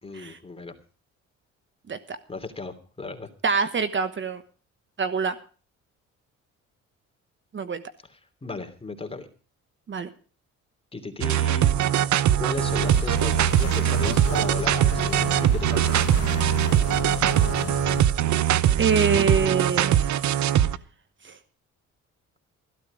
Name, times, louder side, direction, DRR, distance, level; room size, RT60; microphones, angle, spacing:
voice 1, 0.0-0.8 2.3-3.3 8.1-9.3 10.9-11.7 12.4-15.9, left 3 dB, 20° left, 6 dB, 2.9 m, -36 dB
voice 2, 3.4-4.4 5.0-5.4 7.5-7.8 9.9-10.1 18.8-20.1 21.2-21.4, right 5 dB, 40° right, 11 dB, 1.2 m, -25 dB
sound 1, 11.2-20.8, right 11 dB, 70° right, 0.9 m, -22 dB
sound 2, 12.5-18.1, left 8 dB, 55° left, 1.3 m, -33 dB
14.5 x 12.5 x 5.0 m, 0.39 s
cardioid pair, 90°, 30 cm